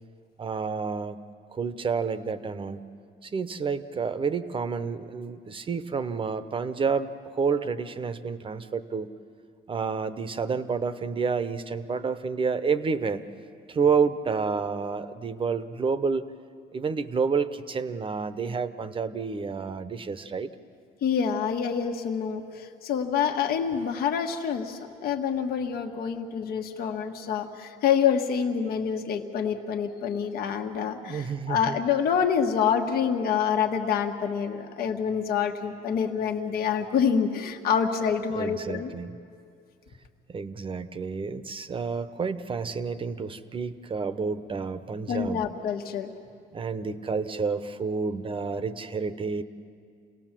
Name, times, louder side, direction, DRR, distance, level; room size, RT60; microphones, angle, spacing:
voice 1, 0.4-1.2 1.5-2.8 3.2-9.1 9.7-13.2 13.7-16.3 16.7-20.5 31.0-31.8 38.3-39.2 40.3-45.4 46.5-49.4, right 5 dB, 30° right, 12 dB, 0.9 m, -29 dB
voice 2, 21.0-38.9 45.1-46.1, left 7 dB, 65° left, 4 dB, 1.5 m, -27 dB
28.0 x 18.0 x 7.5 m, 2.3 s
cardioid pair, 110°, 17 cm